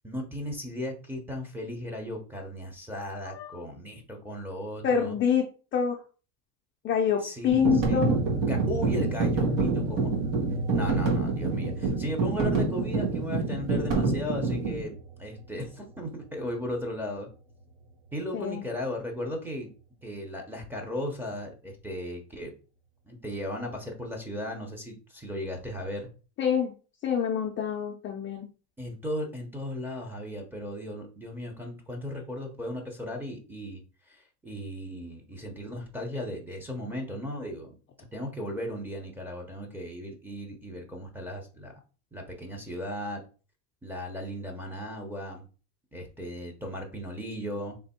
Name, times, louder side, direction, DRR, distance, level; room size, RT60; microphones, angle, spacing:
voice 1, 0.0-5.2 7.2-8.0 8.4-10.1 10.7-17.3 18.1-19.7 20.0-22.5 23.1-26.1 28.8-33.8 34.1-37.7 38.1-41.7 42.1-43.2 43.8-45.4 45.9-47.8, equal, 5° right, -1 dB, 0.7 m, -36 dB
voice 2, 4.8-6.0 6.8-8.2 18.3-18.6 26.4-26.7 27.0-28.5, left 7 dB, 30° left, 1 dB, 0.5 m, -26 dB
sound 1, 7.5-14.8, right 3 dB, 70° right, 1.9 m, -27 dB
sound 2, 7.9-18.8 19.2-20.6, right 3 dB, 90° right, 1.3 m, -38 dB
3.4 x 3.0 x 4.2 m, 0.36 s
cardioid pair, 155°, 39 cm